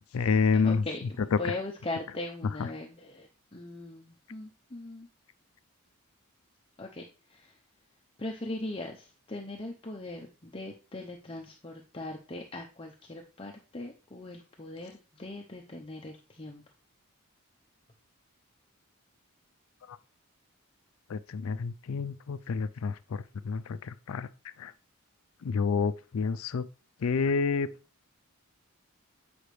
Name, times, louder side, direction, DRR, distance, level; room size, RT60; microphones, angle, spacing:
voice 1, 0.1-0.8 1.4-1.5 19.9-20.0 21.1-24.3 24.6-24.7 25.4-26.7 27.0-27.7, left 5 dB, 75° left, 0.4 m, -29 dB
voice 2, 0.6-1.0 1.4-5.1 6.8-7.6 8.2-16.6, left 2 dB, 25° left, 0.6 m, -40 dB
8.5 x 5.1 x 3.2 m
head